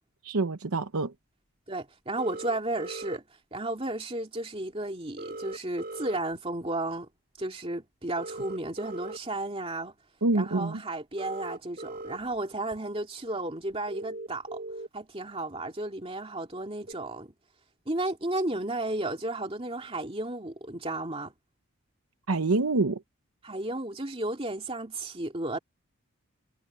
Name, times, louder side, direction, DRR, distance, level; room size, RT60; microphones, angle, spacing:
voice 1, 0.2-1.1 10.2-10.8 22.3-23.0, right 3 dB, 85° right, 0.9 m, -26 dB
voice 2, 1.7-3.2 3.5-7.1 7.4-9.9 10.3-14.6 14.9-17.3 17.9-21.3 23.4-25.6, right 2 dB, 25° right, 2.6 m, -33 dB
sound 1, 2.2-3.2 5.2-6.2 8.2-9.2 11.2-12.2 12.7-12.8 13.9-14.9 16.9-17.0, right 2 dB, 45° right, 6.1 m, -39 dB
head